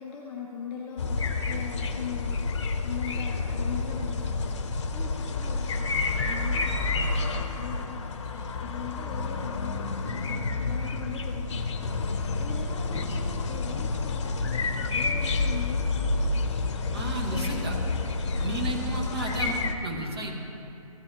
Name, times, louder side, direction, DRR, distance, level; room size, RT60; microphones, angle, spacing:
voice 1, 0.0-2.4 2.8-17.9 18.2-18.8, left 6 dB, 15° left, -3 dB, 0.6 m, -41 dB
sound 1, 1.0-19.7, left 3 dB, 50° left, 0.8 m, -29 dB
voice 2, 16.9-17.7 18.4-20.3, right 2 dB, 40° right, 0 dB, 1.9 m, -33 dB
14.5 x 8.8 x 2.9 m, 2.7 s
figure-of-eight pair, 150°, 19 cm